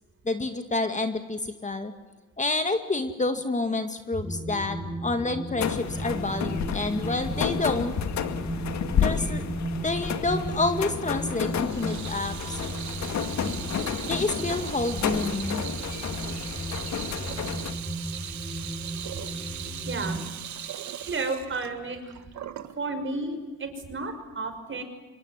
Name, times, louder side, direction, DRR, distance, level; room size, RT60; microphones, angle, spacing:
voice 1, 0.3-1.9 2.4-7.9 9.0-9.4 9.8-12.6 14.1-15.6, left 2 dB, 25° left, 7 dB, 2.1 m, -28 dB
sound 1, 4.2-20.3, right 1 dB, ahead, 3.9 m, -35 dB
sound 2, 5.6-17.7, left 8 dB, 65° left, 2.1 m, -31 dB
Water tap faucet / Sink (filling or washing), 11.4-22.8, right 10 dB, 70° right, 1.8 m, -39 dB
voice 2, 19.8-20.2 21.0-22.2 22.8-24.8, right 3 dB, 40° right, 7 dB, 5.8 m, -32 dB
26.0 x 21.5 x 9.6 m, 1.2 s
cardioid pair, 90°, 30 cm